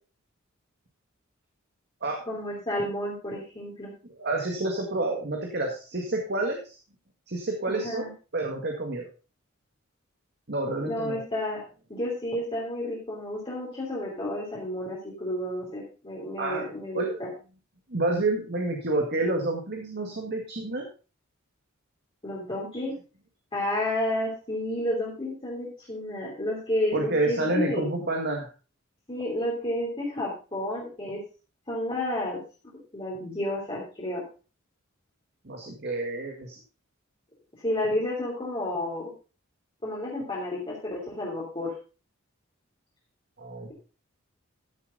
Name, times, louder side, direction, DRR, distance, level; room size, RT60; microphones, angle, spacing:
voice 1, 2.3-3.9 7.7-8.1 10.8-11.6 11.9-17.3 22.2-22.9 23.5-27.9 29.1-31.2 31.7-32.4 32.9-34.2 37.6-39.1 39.8-41.7, left 1 dB, 25° left, -6 dB, 3.1 m, -31 dB
voice 2, 4.1-6.8 7.3-8.1 8.3-9.1 10.5-11.2 16.4-16.7 16.9-17.2 17.9-20.9 26.9-28.5 35.4-36.6 43.4-43.7, right 2 dB, 50° right, 2 dB, 1.9 m, -29 dB
13.5 x 7.2 x 3.9 m, 0.34 s
head